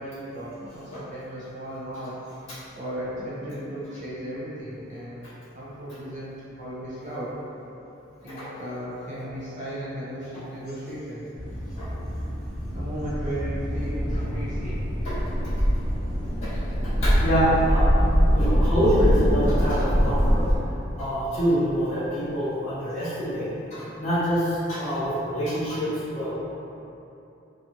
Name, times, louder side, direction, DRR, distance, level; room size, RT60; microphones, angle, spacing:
voice 1, 0.0-2.2 2.7-7.4 8.2-11.3 12.7-14.8, equal, 35° right, -10 dB, 0.6 m, -35 dB
sound 1, 11.3-20.6, equal, ahead, 0.6 m, -24 dB
voice 2, 16.4-17.9 18.3-26.3, equal, 35° left, -15 dB, 1.0 m, -26 dB
2.8 x 2.3 x 2.5 m, 2.8 s
head